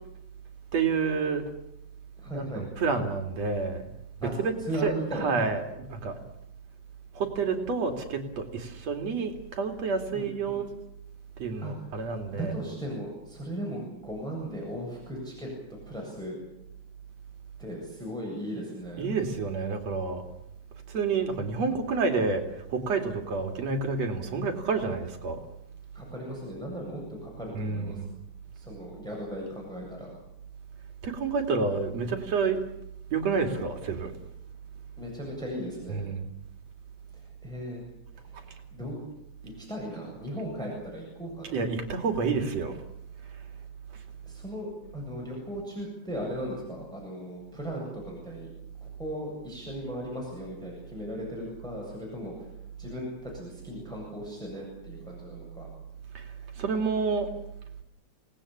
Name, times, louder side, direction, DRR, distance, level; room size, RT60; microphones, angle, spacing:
voice 1, 0.7-1.4 2.3-3.9 4.2-4.5 4.8-6.2 7.1-10.7 11.4-12.5 19.0-20.2 20.9-22.4 22.7-25.4 27.6-28.1 31.0-32.6 33.1-34.1 35.9-36.3 41.5-42.8 56.2-56.3 56.6-57.3, right 4 dB, 60° right, 5 dB, 3.7 m, -29 dB
voice 2, 2.2-2.6 4.2-5.4 10.1-10.6 11.6-11.7 12.3-15.5 15.9-16.4 17.6-19.1 25.9-28.0 28.5-30.1 35.0-36.0 37.4-37.8 38.3-39.0 39.4-41.6 44.3-48.5 48.8-52.5 52.8-55.7, equal, ahead, -2 dB, 7.8 m, -37 dB
27.5 x 19.0 x 8.7 m, 0.82 s
omnidirectional pair, 3.4 m